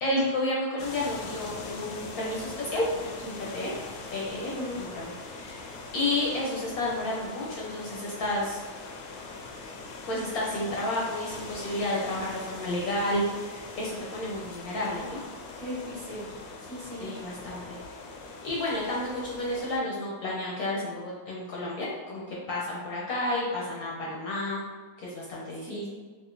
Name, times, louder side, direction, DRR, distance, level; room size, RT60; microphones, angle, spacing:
voice 1, 0.0-3.7 4.1-8.6 10.1-15.2 17.0-17.8 18.4-24.6 25.0-25.9, left 1 dB, 65° left, -4 dB, 1.0 m, -31 dB
sound 1, 0.8-19.8, left 3 dB, 80° left, 1.3 m, -42 dB
voice 2, 4.5-4.9 15.6-17.1 25.6-25.9, equal, 55° right, -8 dB, 1.5 m, -38 dB
4.8 x 2.4 x 2.5 m, 1.5 s
omnidirectional pair, 2.0 m